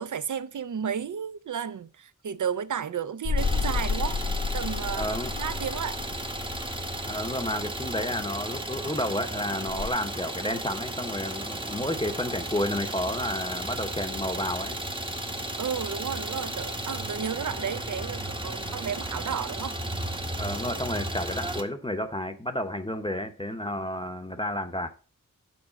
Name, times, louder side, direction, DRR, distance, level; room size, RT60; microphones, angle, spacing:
voice 1, 0.0-4.2 4.5-5.1 5.4-6.0 15.6-19.8, right 8 dB, 60° right, 0.6 m, -32 dB
sound 1, 3.2-7.7 9.7-9.9, left 5 dB, 55° left, 1.0 m, -31 dB
Idling, 3.4-21.6, right 1 dB, 15° right, 0.9 m, -34 dB
voice 2, 4.9-5.3 7.0-14.8 20.4-24.9, left 1 dB, 15° left, 0.8 m, -31 dB
7.2 x 4.7 x 6.3 m
wide cardioid pair, 75°, 35 cm